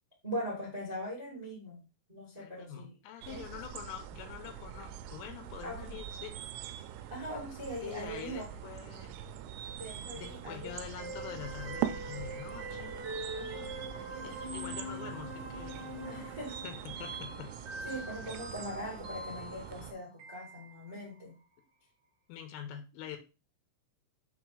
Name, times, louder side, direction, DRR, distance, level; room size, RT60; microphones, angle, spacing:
voice 1, 0.2-2.9 3.3-3.4 5.6-6.0 7.1-8.4 9.8-11.1 13.3-13.8 16.1-16.6 17.8-21.3, equal, 25° right, -3 dB, 0.7 m, -41 dB
voice 2, 2.4-6.4 7.8-9.2 10.1-13.0 14.2-16.0 16.6-17.5 22.3-23.2, left 10 dB, 80° left, 7 dB, 3.3 m, -45 dB
sound 1, 3.2-19.9, right 11 dB, 85° right, 2.8 m, -43 dB
sound 2, 11.0-21.1, right 1 dB, 65° right, 1.1 m, -43 dB
7.3 x 3.2 x 4.9 m, 0.30 s
omnidirectional pair, 5.9 m